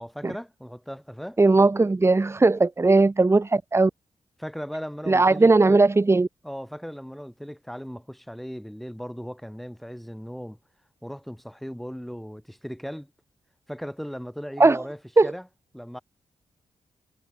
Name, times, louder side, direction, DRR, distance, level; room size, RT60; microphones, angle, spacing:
voice 1, 0.0-1.4 4.4-5.8 6.4-10.6 11.0-13.1 13.7-15.5 15.7-16.0, equal, ahead, 7.8 m, -37 dB
voice 2, 1.4-3.9 5.1-6.3 14.6-14.8 15.2-15.3, right 3 dB, 20° right, 2.5 m, -18 dB
wide cardioid pair, 145°, 13 cm